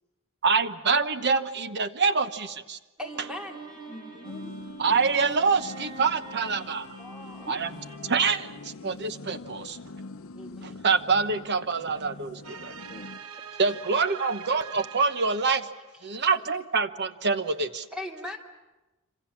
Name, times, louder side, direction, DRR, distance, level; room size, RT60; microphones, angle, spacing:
voice 1, 0.4-2.8 4.8-6.9 7.5-7.7 8.0-9.8 10.6-12.7 13.6-15.7 16.0-17.9, right 4 dB, 55° right, 11 dB, 1.1 m, -26 dB
voice 2, 3.0-3.6 7.0-7.5 10.3-10.8 16.0-16.5 17.9-18.4, left 1 dB, 5° right, 1 dB, 3.0 m, -40 dB
Bowed string instrument, 3.0-9.3, right 3 dB, 20° right, 5.5 m, -46 dB
voice 3, 3.9-4.5 7.4-7.6 12.4-13.8, left 1 dB, 15° left, 0 dB, 2.7 m, -47 dB
sound 1, 4.2-13.2, left 3 dB, 70° left, 0.8 m, -44 dB
sound 2, 12.4-16.0, right 7 dB, 85° right, 1.1 m, -44 dB
26.5 x 26.0 x 7.3 m, 1.1 s
head